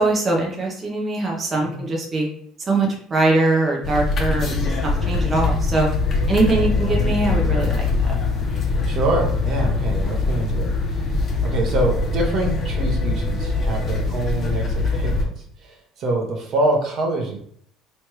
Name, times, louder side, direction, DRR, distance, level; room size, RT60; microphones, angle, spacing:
voice 1, 0.0-2.3 2.7-5.9 6.3-7.9, right 2 dB, 30° right, -2 dB, 0.8 m, -22 dB
voice 2, 1.6-1.9 6.5-6.8 8.7-11.2 11.4-15.3 15.6-17.4, right 2 dB, 60° right, 1 dB, 1.0 m, -25 dB
sound 1, 3.8-15.2, left 3 dB, 45° left, 1.0 m, -22 dB
3.3 x 3.1 x 3.1 m, 0.64 s
supercardioid pair, 85°, 0 cm